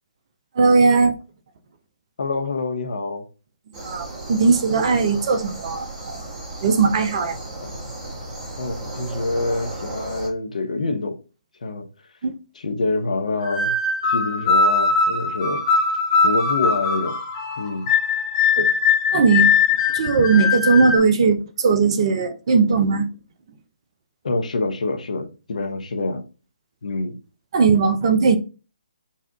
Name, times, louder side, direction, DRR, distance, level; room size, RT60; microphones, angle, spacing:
voice 1, 0.6-1.1 3.8-6.2 6.6-7.4 12.2-12.4 18.6-18.7 19.1-19.5 19.9-23.1 27.5-28.4, right 4 dB, 40° right, 0.6 m, -18 dB
voice 2, 2.2-3.2 7.8-7.9 8.6-11.2 11.6-11.9 12.5-13.8 14.1-15.6 16.2-17.2 17.6-17.9 24.2-26.2 26.8-27.2, left 3 dB, 60° left, 0.9 m, -26 dB
sound 1, 3.7-10.3, right 2 dB, 20° right, 1.2 m, -35 dB
sound 2, 13.4-21.0, left 5 dB, 35° left, 1.1 m, -20 dB
4.2 x 2.4 x 3.6 m
figure-of-eight pair, 140°, 4 cm